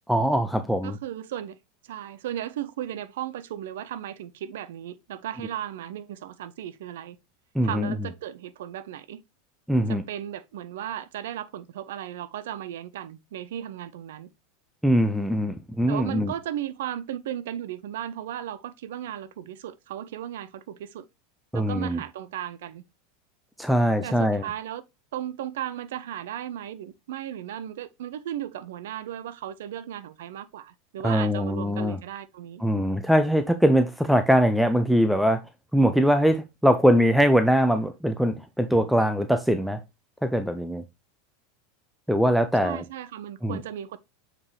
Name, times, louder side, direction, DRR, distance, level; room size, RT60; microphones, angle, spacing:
voice 1, 0.1-1.0 7.5-8.0 9.7-10.0 14.8-16.3 21.5-22.0 23.6-24.5 31.0-32.0 32.6-35.4 35.7-39.8 40.2-40.8 42.1-42.8 43.4-43.6, equal, ahead, 0.6 m, -22 dB
voice 2, 0.8-1.6 1.8-7.2 7.6-9.2 9.9-14.3 15.9-21.0 21.5-22.8 24.0-24.8 25.1-32.6 42.6-44.0, right 11 dB, 60° right, 0.4 m, -35 dB
7.2 x 4.9 x 3.1 m
figure-of-eight pair, 80°, 0 cm